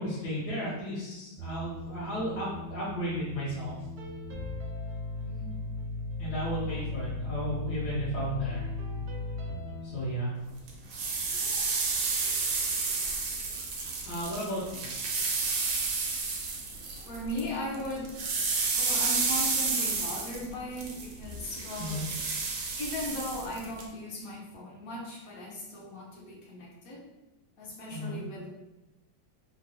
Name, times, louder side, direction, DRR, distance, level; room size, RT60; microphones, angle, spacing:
voice 1, 0.0-3.7 6.2-8.7 9.8-10.3 14.0-14.9 21.8-22.0 27.9-28.2, equal, 80° left, -10 dB, 1.5 m, -34 dB
sound 1, 1.4-9.9, left 2 dB, 70° right, 0.9 m, -37 dB
voice 2, 5.2-5.6 6.6-6.9 15.2-15.3 17.0-18.1 18.8-22.2 22.8-27.0 27.6-28.5, left 1 dB, 65° left, -3 dB, 0.9 m, -38 dB
sound 2, 10.7-17.5 17.7-23.8, right 4 dB, 90° right, 1.3 m, -31 dB
3.7 x 2.0 x 2.6 m, 1.0 s
omnidirectional pair, 1.9 m